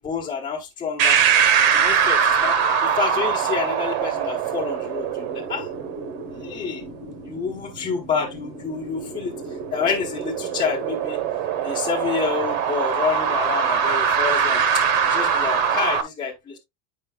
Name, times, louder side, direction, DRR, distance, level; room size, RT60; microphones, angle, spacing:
voice 1, 0.0-1.2 1.7-5.7 6.3-6.8 7.2-9.4 9.7-11.2 11.6-16.6, left 6 dB, 20° left, 1.0 m, -28 dB
sound 1, 1.0-16.0, right 7 dB, 65° right, 1.1 m, -23 dB
8.7 x 5.3 x 2.2 m
cardioid pair, 170°, 44 cm